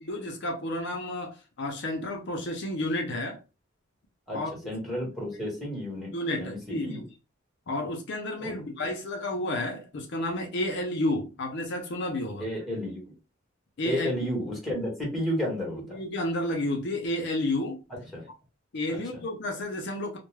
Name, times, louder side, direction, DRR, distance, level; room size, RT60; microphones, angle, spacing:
voice 1, 0.0-3.4 4.3-4.5 5.3-5.4 6.1-7.0 7.7-12.5 13.8-14.1 15.9-17.8 18.7-20.2, left 1 dB, 55° left, 0.5 m, -31 dB
voice 2, 4.3-7.0 8.4-8.5 12.4-13.1 13.8-16.0 18.1-18.3 18.9-19.2, equal, ahead, 1.1 m, -32 dB
2.2 x 2.1 x 3.1 m
head